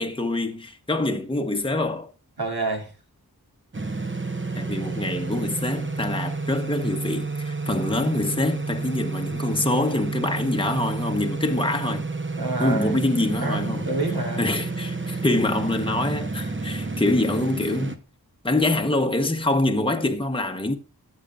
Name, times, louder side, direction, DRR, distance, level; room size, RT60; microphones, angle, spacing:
voice 1, 0.0-2.1 4.5-12.1 12.6-13.9 14.4-18.0 18.4-20.8, left 2 dB, 15° left, 1.0 m, -25 dB
voice 2, 2.4-2.9 12.4-12.9 13.4-14.4, right 2 dB, 70° right, 2.7 m, -27 dB
sound 1, 3.7-18.0, right 3 dB, 30° right, 0.9 m, -30 dB
14.0 x 7.4 x 2.4 m
wide cardioid pair, 65°, 39 cm